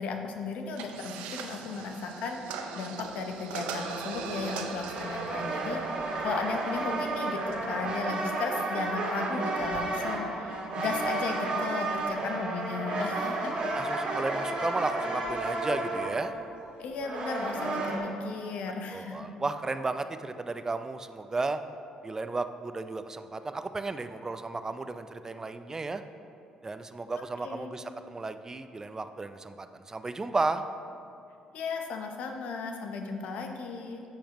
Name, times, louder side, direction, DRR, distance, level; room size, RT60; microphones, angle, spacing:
voice 1, 0.0-5.8 6.2-13.5 16.8-19.3 27.4-27.7 31.5-34.0, left 4 dB, 75° left, 4 dB, 0.8 m, -35 dB
sound 1, 0.7-7.9, right 5 dB, 90° right, 0.6 m, -40 dB
sound 2, 4.8-18.0, right 2 dB, 55° right, 2.0 m, -32 dB
voice 2, 13.7-16.3 18.9-21.6 22.0-26.0 26.6-30.6, right 3 dB, 25° right, 10 dB, 0.4 m, -34 dB
10.0 x 7.1 x 3.0 m, 2.5 s
supercardioid pair, 70°, 2 cm